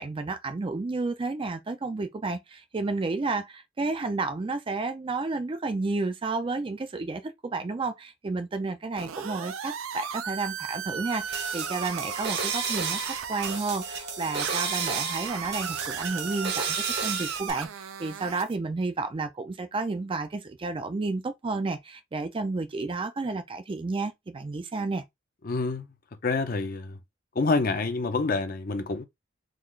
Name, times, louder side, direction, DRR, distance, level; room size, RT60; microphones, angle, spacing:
voice 1, 0.0-25.0, right 3 dB, 25° right, 0.4 m, -31 dB
sound 1, 9.0-13.6 14.4-18.6, right 8 dB, 85° right, 0.5 m, -36 dB
sound 2, 11.1-17.5, right 5 dB, 55° right, 0.9 m, -32 dB
voice 2, 25.4-25.9 26.2-27.0 27.4-29.0, left 3 dB, 45° left, 0.6 m, -27 dB
3.8 x 2.4 x 3.1 m
head